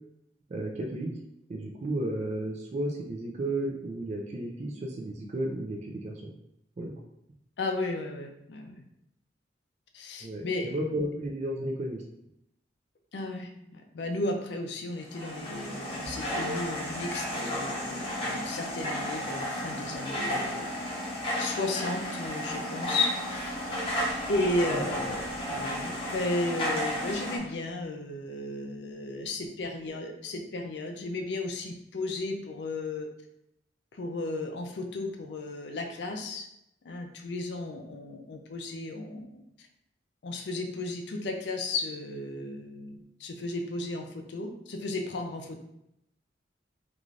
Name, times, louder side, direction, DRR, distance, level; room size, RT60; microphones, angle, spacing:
voice 1, 0.5-1.1 1.5-6.3 6.8-6.9 10.2-12.0 24.7-24.9, right 1 dB, 40° right, 0 dB, 0.3 m, -33 dB
voice 2, 7.6-8.8 9.9-10.7 13.1-20.7 21.4-23.5 24.3-33.1 33.9-36.5 36.8-39.4 40.2-45.6, left 2 dB, 70° left, 4 dB, 0.4 m, -34 dB
sound 1, 15.0-27.4, equal, 30° left, 0.7 m, -33 dB
3.1 x 2.5 x 2.4 m, 0.80 s
head